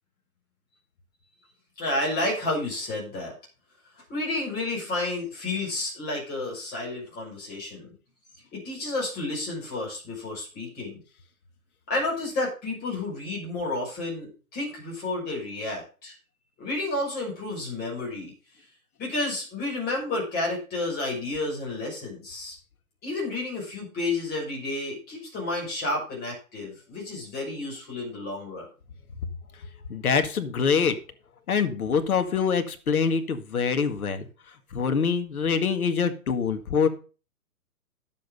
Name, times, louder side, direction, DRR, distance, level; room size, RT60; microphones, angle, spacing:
voice 1, 1.8-3.3 4.1-7.9 8.5-11.0 11.9-16.1 16.6-18.3 19.0-22.6 23.0-28.7, left 2 dB, 20° left, -2 dB, 6.2 m, -31 dB
voice 2, 29.9-31.0 31.5-34.2 34.7-36.9, left 6 dB, 75° left, 8 dB, 1.9 m, -24 dB
10.5 x 7.5 x 5.3 m, 0.36 s
hypercardioid pair, 135°, 44 cm